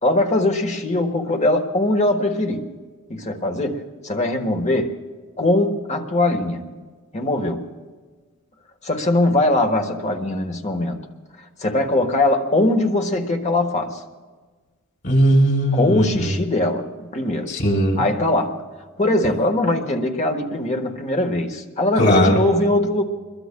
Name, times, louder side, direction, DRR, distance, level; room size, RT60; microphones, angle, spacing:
voice 1, 0.0-2.7 3.1-5.0 5.4-6.7 7.1-7.6 8.8-11.0 11.6-14.0 15.7-17.6 17.9-18.6 19.0-23.0, left 1 dB, 30° left, 4 dB, 1.3 m, -21 dB
voice 2, 15.0-16.3 17.5-18.0 22.0-22.4, equal, 50° left, -1 dB, 4.1 m, -18 dB
26.5 x 22.0 x 2.3 m, 1.4 s
head